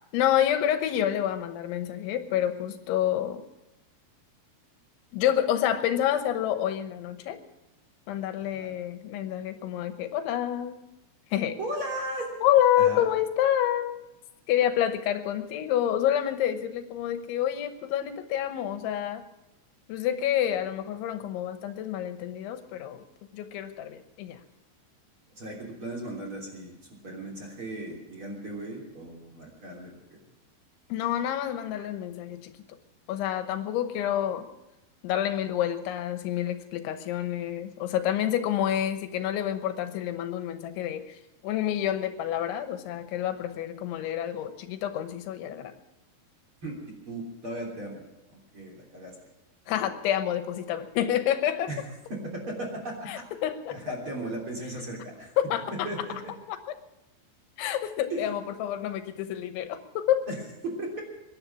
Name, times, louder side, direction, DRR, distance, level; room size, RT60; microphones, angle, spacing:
voice 1, 0.1-3.4 5.1-7.4 8.1-10.8 11.3-11.6 12.4-14.0 14.5-19.2 19.9-23.0 23.3-24.4 30.9-32.5 33.1-34.5 35.0-41.2 41.4-45.7 49.7-51.7 53.1-53.8 55.4-55.9 56.5-56.6 57.6-60.3, left 11 dB, 80° left, 9 dB, 3.4 m, -28 dB
voice 2, 11.6-12.3 12.8-13.0 25.4-30.0 46.6-46.8 47.1-48.0 48.5-49.1 51.7-51.8 52.1-53.2 53.7-55.3 55.9-56.1 58.1-58.3 60.3-61.0, right 1 dB, 30° right, -1 dB, 3.5 m, -36 dB
22.0 x 10.5 x 6.1 m, 0.93 s
omnidirectional pair, 5.4 m